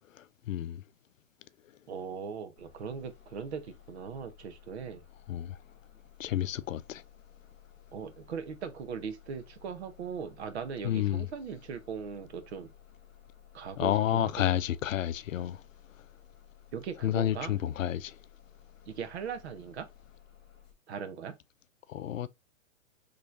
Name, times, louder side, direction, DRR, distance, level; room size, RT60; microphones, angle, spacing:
voice 1, 0.5-0.8 5.3-5.6 6.2-7.0 10.8-11.2 13.8-15.6 17.0-18.1 21.9-22.3, left 11 dB, 80° left, 0.6 m, -30 dB
voice 2, 1.9-5.0 7.9-12.7 13.5-14.6 16.7-17.6 18.9-19.9 20.9-21.3, right 6 dB, 55° right, 0.9 m, -39 dB
Bus, 2.6-20.7, left 10 dB, 10° left, 0.6 m, -57 dB
4.5 x 3.1 x 2.5 m
hypercardioid pair, 165°, 39 cm